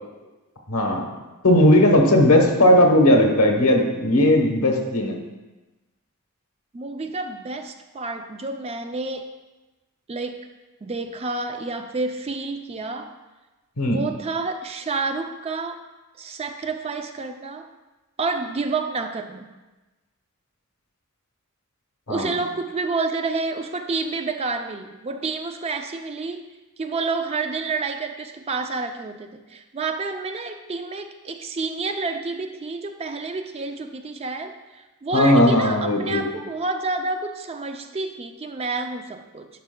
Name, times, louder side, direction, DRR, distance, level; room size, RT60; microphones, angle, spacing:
voice 1, 0.7-1.1 1.4-5.2 13.8-14.0 22.1-22.3 35.1-36.2, left 1 dB, 85° left, 2 dB, 1.1 m, -17 dB
voice 2, 6.7-9.3 10.1-10.5 10.8-13.2 13.9-15.8 16.2-17.7 18.2-19.5 22.1-26.5 26.8-39.5, right 3 dB, 25° right, 7 dB, 0.3 m, -29 dB
10.5 x 5.6 x 2.2 m, 1.1 s
head